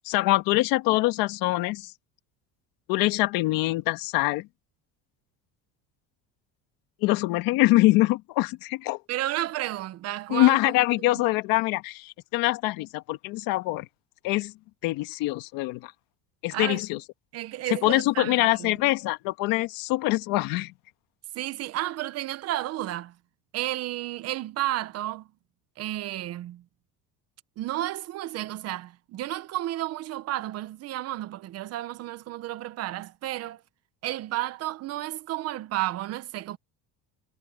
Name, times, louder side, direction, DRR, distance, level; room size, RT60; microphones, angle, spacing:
voice 1, 0.0-1.9 2.9-4.5 7.0-9.0 10.3-13.9 14.2-14.5 14.8-15.9 16.4-17.0 17.8-20.7, left 19 dB, 75° left, 1.4 m, -24 dB
voice 2, 9.1-10.6 16.5-16.8 17.3-18.7 21.3-23.1 23.5-25.3 25.8-26.6 27.6-33.6 34.0-36.6, right 14 dB, 45° right, 0.9 m, -32 dB
cardioid pair, 165°, 35 cm